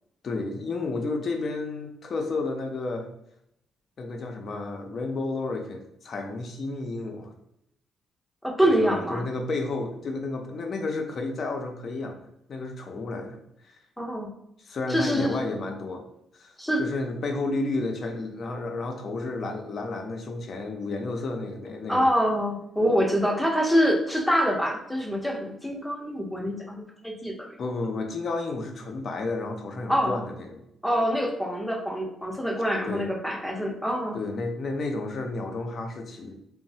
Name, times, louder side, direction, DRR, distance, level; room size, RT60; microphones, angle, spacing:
voice 1, 0.2-3.1 4.0-7.3 8.8-12.2 12.5-13.4 13.6-13.8 14.6-16.1 16.3-16.5 16.8-22.1 27.6-30.6 32.8-33.1 34.1-36.3, left 3 dB, 50° left, 3 dB, 0.5 m, -31 dB
voice 2, 8.4-9.3 14.0-14.3 14.9-15.5 16.6-16.8 21.9-27.5 29.9-30.2 30.8-34.2, equal, 5° left, -1 dB, 0.6 m, -25 dB
3.0 x 2.0 x 2.7 m, 0.76 s
cardioid pair, 90°, 0 cm